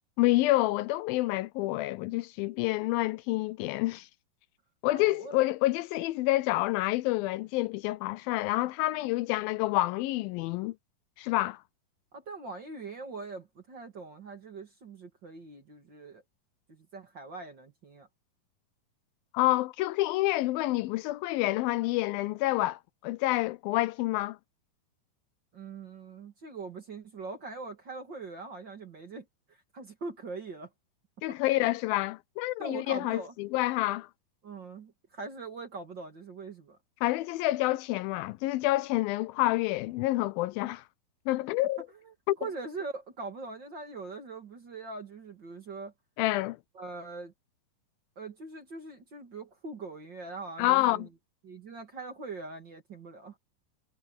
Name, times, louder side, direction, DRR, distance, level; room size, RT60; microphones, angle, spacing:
voice 1, 0.2-4.1 4.8-10.7 11.2-11.6 19.3-24.4 31.2-34.1 37.0-40.8 41.3-41.8 42.3-42.4 46.2-46.6 50.6-51.1, left 18 dB, 85° left, 2.3 m, -28 dB
voice 2, 4.9-5.4 12.1-16.2 16.7-18.1 25.5-30.7 31.3-31.4 32.6-33.3 34.4-36.8 42.0-45.9 46.7-47.3 48.2-51.1 51.4-53.4, right 3 dB, 40° right, 2.1 m, -42 dB
omnidirectional pair, 4.3 m